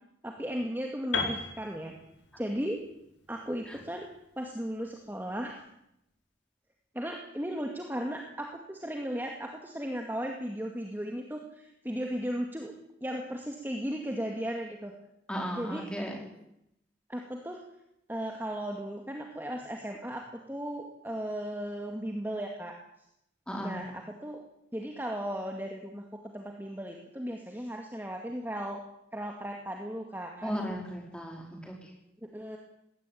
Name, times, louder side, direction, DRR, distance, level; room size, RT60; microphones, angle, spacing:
voice 1, 0.2-1.9 2.4-2.8 3.3-4.1 4.4-5.6 6.9-12.7 13.0-14.9 15.6-15.9 17.1-17.6 18.1-22.7 23.6-24.4 24.7-26.0 26.3-28.8 29.1-30.6 32.2-32.6, equal, 10° right, 2 dB, 2.2 m, -36 dB
Piano, 1.1-5.1, left 4 dB, 80° left, 4.8 m, -37 dB
voice 2, 15.3-16.2 23.5-23.8 30.4-31.9, equal, 5° left, 1 dB, 4.8 m, -35 dB
20.5 x 17.5 x 9.3 m, 0.83 s
head